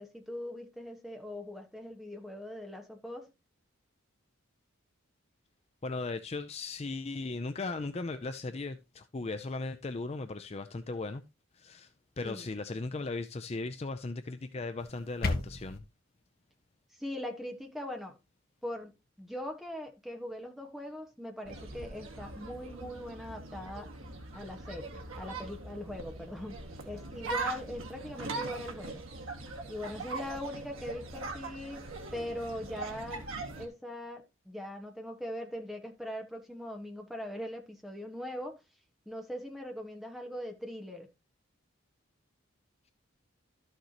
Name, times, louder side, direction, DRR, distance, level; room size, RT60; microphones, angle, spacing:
voice 1, 0.0-3.3 12.2-12.5 17.0-18.1 18.6-23.9 24.3-26.6 26.8-29.0 29.7-33.2 33.6-38.6 39.0-41.1, left 1 dB, ahead, 1.4 m, -41 dB
voice 2, 5.8-11.2 11.5-11.9 12.2-15.8, left 3 dB, 30° left, 0.4 m, -37 dB
sound 1, 14.8-15.8, left 2 dB, 45° left, 1.1 m, -33 dB
sound 2, 21.4-33.7, right 3 dB, 85° right, 2.0 m, -41 dB
12.5 x 6.5 x 2.9 m
head